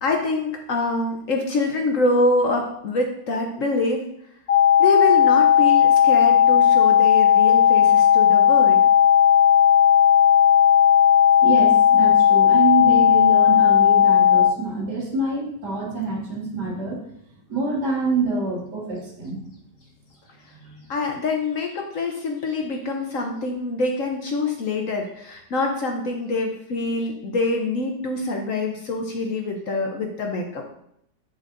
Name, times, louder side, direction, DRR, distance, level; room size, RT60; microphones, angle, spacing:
voice 1, 0.0-4.1 4.8-8.8 20.4-20.5 20.9-30.6, left 2 dB, 60° left, 2 dB, 1.0 m, -25 dB
sound 1, 4.5-14.5, left 9 dB, 40° left, 1.5 m, -15 dB
voice 2, 11.4-17.0 17.5-19.4 20.6-20.8, right 3 dB, 70° right, -2 dB, 2.2 m, -26 dB
7.5 x 7.4 x 2.5 m, 0.73 s
omnidirectional pair, 1.9 m